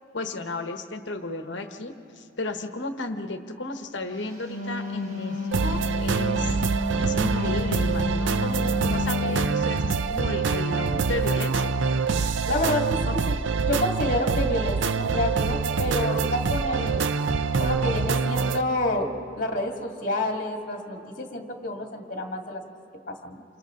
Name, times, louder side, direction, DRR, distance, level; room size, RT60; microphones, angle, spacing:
voice 1, 0.1-6.6 7.0-11.7 13.0-13.1, left 2 dB, 65° left, 6 dB, 1.1 m, -33 dB
Wind instrument woodwind instrument, 4.3-9.6, left 2 dB, 45° right, 3.1 m, -30 dB
sound 1, 5.5-18.6, right 5 dB, 70° right, 0.5 m, -25 dB
voice 2, 12.5-17.1 17.6-19.1 19.4-22.6 23.1-23.4, left 1 dB, 40° left, 2 dB, 2.2 m, -29 dB
28.5 x 27.0 x 3.8 m, 2.7 s
head